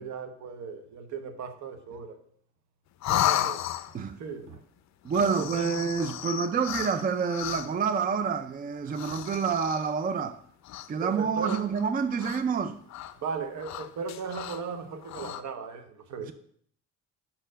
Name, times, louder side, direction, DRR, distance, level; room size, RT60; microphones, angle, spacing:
voice 1, 0.0-2.2 3.0-3.7 4.2-4.6 5.2-5.9 11.0-11.6 13.2-16.3, right 5 dB, 65° right, 1.0 m, -37 dB
sound 1, 3.0-4.1 5.0-7.9 8.9-10.0 10.6-11.1 11.4-12.6 12.9-13.1 13.6-14.7 15.0-15.4, left 12 dB, 60° left, 0.5 m, -33 dB
voice 2, 5.0-10.4 10.9-12.8, right 6 dB, 30° right, 0.4 m, -28 dB
5.9 x 4.5 x 6.2 m
cardioid pair, 110°, 31 cm